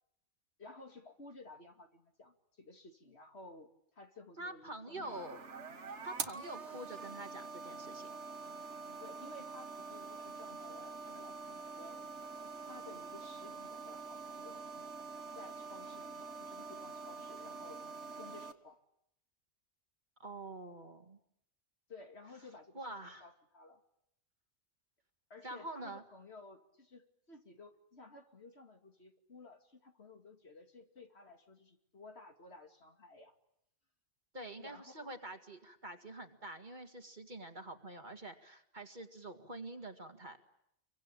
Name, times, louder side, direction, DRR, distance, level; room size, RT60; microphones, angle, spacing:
voice 1, 0.6-5.3 9.0-12.0 12.6-14.6 15.3-18.8 21.9-23.8 25.3-33.3 34.6-35.1, left 3 dB, 55° left, 4 dB, 2.7 m, -55 dB
voice 2, 4.4-5.4 6.0-8.1 20.2-21.2 22.7-23.3 25.4-26.0 34.3-40.4, right 1 dB, 35° right, 6 dB, 2.1 m, -46 dB
sound 1, 5.0-18.5, right 4 dB, 60° right, 1.8 m, -46 dB
28.0 x 24.0 x 8.9 m, 0.77 s
omnidirectional pair, 1.3 m